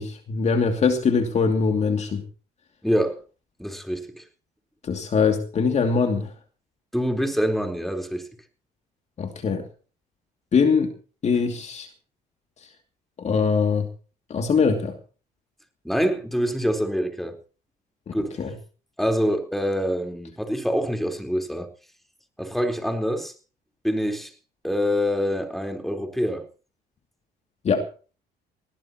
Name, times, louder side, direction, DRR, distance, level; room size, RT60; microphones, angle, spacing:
voice 1, 0.0-2.2 4.8-6.3 9.2-9.6 10.5-10.9 11.2-11.9 13.2-13.9 14.3-14.9 18.4-18.5 27.6-27.8, left 5 dB, 40° left, 2.6 m, -22 dB
voice 2, 2.8-3.2 3.6-4.2 6.9-8.3 15.8-17.4 18.1-18.5 19.0-21.7 22.4-23.3 23.8-24.3 24.6-26.4, equal, ahead, 4.2 m, -25 dB
20.5 x 18.5 x 3.0 m
cardioid pair, 110°, 17 cm